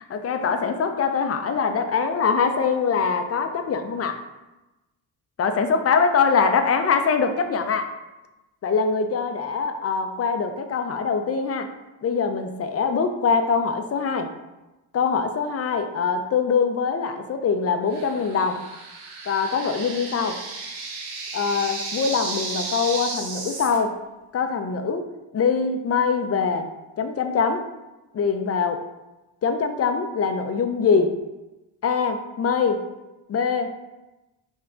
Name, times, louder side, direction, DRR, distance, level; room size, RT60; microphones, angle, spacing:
voice 1, 0.1-4.2 5.4-7.9 8.6-11.7 12.0-14.3 14.9-18.6 19.3-20.4 21.3-24.0 24.3-25.0 25.3-26.7 27.0-27.7 28.1-28.8 29.4-31.2 31.8-32.8 33.3-33.7, left 5 dB, 35° left, 7 dB, 0.4 m, -23 dB
sound 1, 17.9-23.8, right 3 dB, 90° right, 0.8 m, -33 dB
3.5 x 2.2 x 3.7 m, 1.0 s
supercardioid pair, 55°, 46 cm